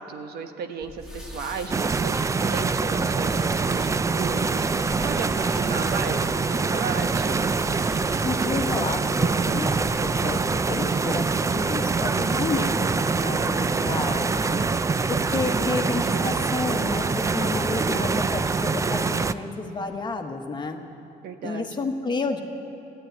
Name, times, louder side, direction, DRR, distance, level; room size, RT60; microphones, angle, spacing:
voice 1, 0.0-7.4 21.2-21.7, right 6 dB, 70° right, 7 dB, 1.1 m, -35 dB
sound 1, 0.8-10.3, left 1 dB, 5° right, 2.0 m, -42 dB
sound 2, 1.7-19.3, right 4 dB, 20° right, 0.4 m, -24 dB
voice 2, 8.2-14.6 15.1-20.8 21.4-22.4, left 3 dB, 25° left, 4 dB, 1.3 m, -31 dB
14.5 x 10.5 x 9.3 m, 2.9 s
cardioid pair, 110°, 17 cm